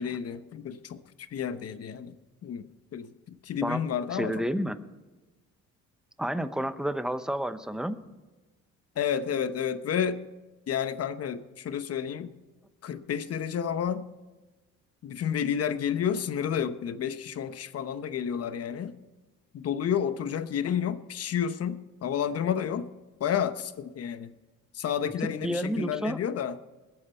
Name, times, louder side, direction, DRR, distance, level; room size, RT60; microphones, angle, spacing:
voice 1, 0.0-2.2 2.4-4.5 9.0-10.2 10.7-12.3 12.8-14.0 15.0-19.0 19.5-22.9 23.2-24.3 24.7-26.6, left 8 dB, 55° left, 12 dB, 1.0 m, -30 dB
voice 2, 4.1-4.8 6.2-8.0 25.4-26.2, right 1 dB, ahead, 11 dB, 0.9 m, -30 dB
21.0 x 8.9 x 4.4 m, 1.2 s
cardioid pair, 95°, 30 cm